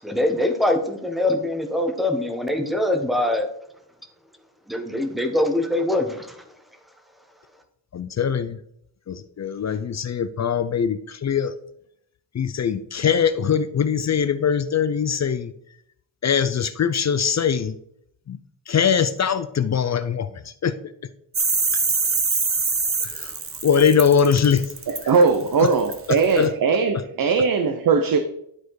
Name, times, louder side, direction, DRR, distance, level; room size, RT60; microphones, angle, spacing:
voice 1, 0.0-3.5 4.7-6.4, left 1 dB, ahead, 5 dB, 1.0 m, -23 dB
voice 2, 7.9-8.6 9.1-11.5 12.3-15.5 16.2-17.8 18.3-18.4 18.7-20.9 23.0-24.7 25.0-25.1 25.6-25.7 26.4-26.5, left 7 dB, 35° left, 13 dB, 0.4 m, -22 dB
sound 1, 21.3-26.5, right 4 dB, 30° right, 1.1 m, -24 dB
voice 3, 25.1-28.2, right 5 dB, 45° right, 8 dB, 0.7 m, -19 dB
12.0 x 4.4 x 4.7 m, 0.73 s
wide cardioid pair, 135°, 47 cm